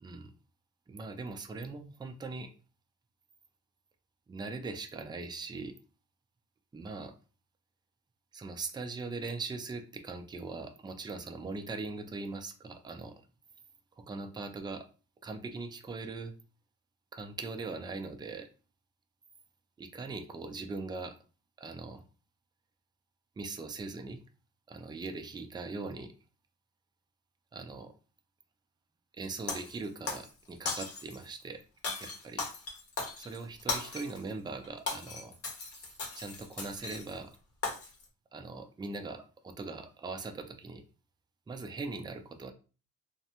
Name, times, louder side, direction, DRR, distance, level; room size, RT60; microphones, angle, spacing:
voice 1, 0.0-0.3 0.9-2.5 4.3-5.8 6.7-7.1 8.3-13.2 14.0-14.9 15.2-16.3 17.1-18.5 19.8-21.2 21.6-22.0 23.4-24.2 24.7-26.1 27.5-27.9 29.1-31.6 32.0-32.4 33.2-35.4 36.1-37.4 38.3-40.8 41.5-42.5, right 3 dB, 15° right, 6 dB, 0.4 m, -40 dB
Shatter, 29.5-30.3 30.7-31.3 31.8-34.2 34.6-37.2 37.6-38.0, left 4 dB, 50° left, 0.8 m, -37 dB
2.5 x 2.1 x 2.8 m, 0.35 s
cardioid pair, 90°, 30 cm